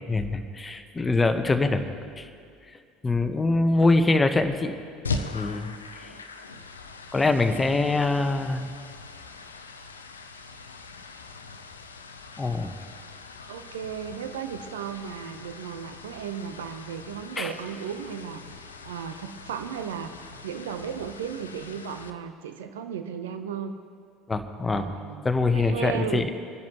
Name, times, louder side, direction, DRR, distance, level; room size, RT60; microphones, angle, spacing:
voice 1, 0.0-1.8 2.2-2.3 2.7-4.8 5.3-6.1 7.1-8.7 12.4-12.7 17.4-17.5 24.3-24.9 25.2-26.2, left 3 dB, 20° left, 7 dB, 1.1 m, -24 dB
sound 1, 5.0-22.1, left 4 dB, 85° left, 0.6 m, -41 dB
voice 2, 13.5-18.4 18.8-20.1 20.4-23.7 24.7-25.2 25.5-26.3, right 8 dB, 75° right, 8 dB, 0.8 m, -35 dB
24.0 x 10.5 x 3.1 m, 2.3 s
figure-of-eight pair, 70°, 0 cm